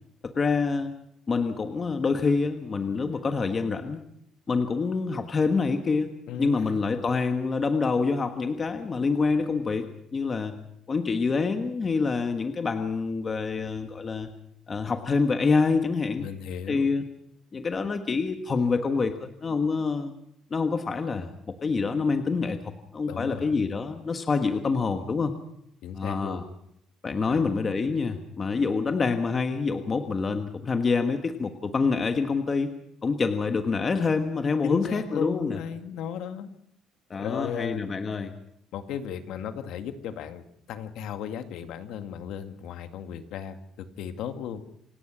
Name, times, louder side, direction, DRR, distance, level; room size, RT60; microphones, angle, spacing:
voice 1, 0.2-0.9 1.3-4.0 4.5-6.1 6.4-10.6 10.9-14.3 14.7-16.3 16.7-17.0 17.5-20.1 20.5-25.3 25.9-26.4 27.0-32.7 33.0-35.6 37.1-38.3, left 4 dB, 25° left, 6 dB, 1.3 m, -26 dB
voice 2, 6.3-6.8 16.2-16.9 23.1-23.5 25.8-26.4 27.3-27.5 34.6-36.5 37.2-37.9 38.7-44.6, left 8 dB, 75° left, 7 dB, 2.0 m, -36 dB
27.5 x 18.0 x 6.2 m, 0.74 s
cardioid pair, 170°, 0 cm